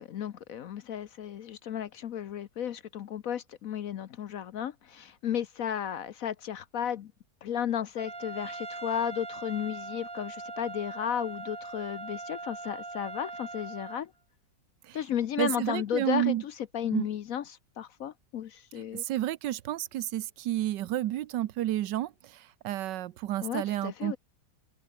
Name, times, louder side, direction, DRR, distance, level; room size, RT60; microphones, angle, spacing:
voice 1, 0.0-7.1 7.4-14.1 14.9-19.0 23.4-24.2, left 9 dB, 60° left, 1.0 m, -34 dB
Trumpet, 8.0-14.0, right 2 dB, 15° right, 1.0 m, -41 dB
voice 2, 15.4-16.4 16.9-17.1 19.1-22.1 22.6-24.2, right 13 dB, 75° right, 1.4 m, -30 dB
omnidirectional pair, 1.9 m